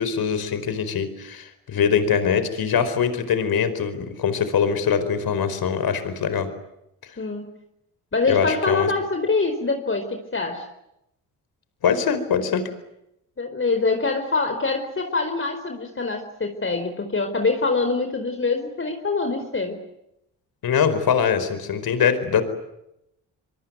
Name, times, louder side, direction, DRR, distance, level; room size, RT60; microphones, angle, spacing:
voice 1, 0.0-6.5 8.3-8.9 11.8-12.6 20.6-22.4, left 7 dB, 60° left, 12 dB, 4.8 m, -22 dB
voice 2, 7.2-7.5 8.1-10.7 13.4-19.8, left 3 dB, 30° left, 6 dB, 4.5 m, -24 dB
25.5 x 24.0 x 9.4 m, 0.84 s
hypercardioid pair, 50°, 40 cm